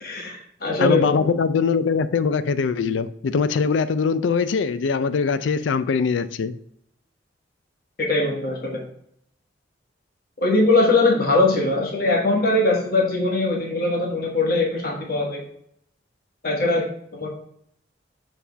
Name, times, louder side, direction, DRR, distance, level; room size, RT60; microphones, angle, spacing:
voice 1, 0.0-1.2 8.0-8.8 10.4-15.4 16.4-16.9 17.1-17.3, left 2 dB, 50° left, 1.1 m, -21 dB
voice 2, 0.8-6.6, left 5 dB, 85° left, 0.4 m, -22 dB
7.1 x 4.3 x 3.3 m
head